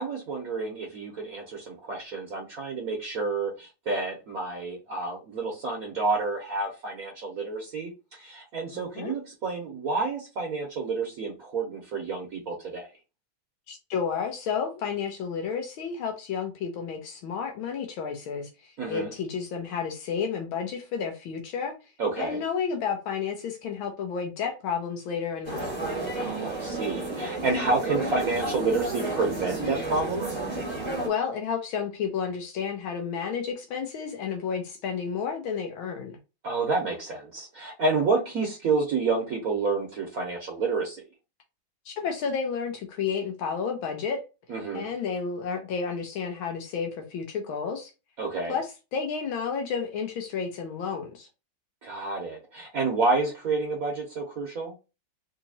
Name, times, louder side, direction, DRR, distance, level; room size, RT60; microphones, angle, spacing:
voice 1, 0.0-12.9 18.8-19.1 22.0-22.4 26.1-30.4 36.4-41.0 44.5-44.9 48.2-48.6 51.8-54.7, right 3 dB, 55° right, 1.1 m, -29 dB
voice 2, 8.7-9.1 13.7-21.7 22.2-25.7 31.0-36.2 41.9-44.2 44.7-47.9 48.5-51.3, left 6 dB, 75° left, 1.5 m, -31 dB
sound 1, 25.4-31.1, right 2 dB, 20° right, 0.9 m, -31 dB
4.1 x 2.7 x 2.7 m
omnidirectional pair, 2.3 m